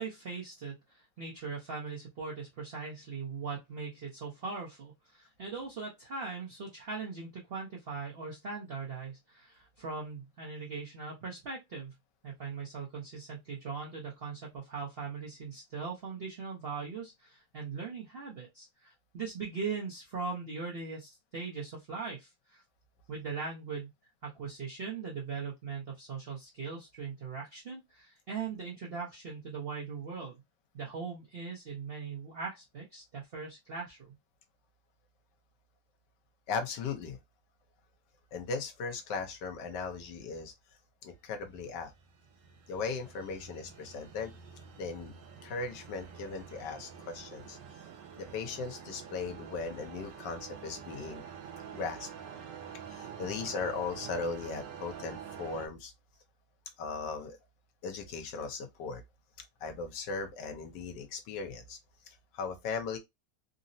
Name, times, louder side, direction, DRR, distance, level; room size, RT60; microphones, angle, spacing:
voice 1, 0.0-11.9 12.2-22.6 23.1-23.9 24.2-30.4 30.7-34.1, right 5 dB, 65° right, 0.6 m, -40 dB
voice 2, 36.5-37.2 38.3-40.5 41.0-41.9 42.7-44.3 44.8-45.1 45.4-47.6 48.2-51.2 51.7-52.1 52.9-55.9 56.8-57.4 57.8-59.0 59.6-61.8 62.1-63.0, left 4 dB, 75° left, 1.3 m, -38 dB
sound 1, 41.6-55.7, right 7 dB, 80° right, 1.2 m, -47 dB
3.8 x 2.0 x 2.6 m
omnidirectional pair, 2.0 m